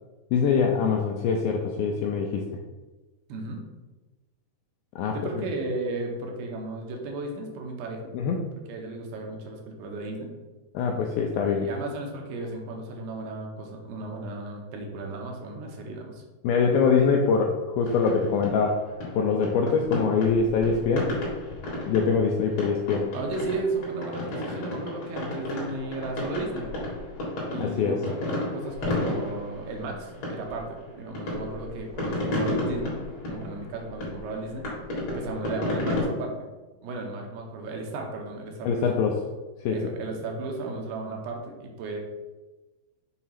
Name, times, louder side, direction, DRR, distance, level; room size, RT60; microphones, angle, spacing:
voice 1, 0.3-2.5 5.0-5.2 8.1-8.4 10.7-11.7 16.4-18.8 19.1-21.1 21.9-23.1 27.6-28.0 38.6-39.2 39.6-39.8, left 5 dB, 85° left, 1 dB, 2.1 m, -23 dB
voice 2, 3.3-3.6 5.1-8.1 8.7-10.3 11.5-16.2 23.1-26.7 27.5-32.9 33.3-34.7 35.1-36.5 36.8-38.9 39.7-42.0, right 3 dB, 75° right, 1 dB, 2.8 m, -34 dB
sound 1, 17.9-36.0, left 1 dB, 50° left, 2.5 m, -32 dB
7.0 x 2.8 x 5.6 m, 1.2 s
omnidirectional pair, 4.8 m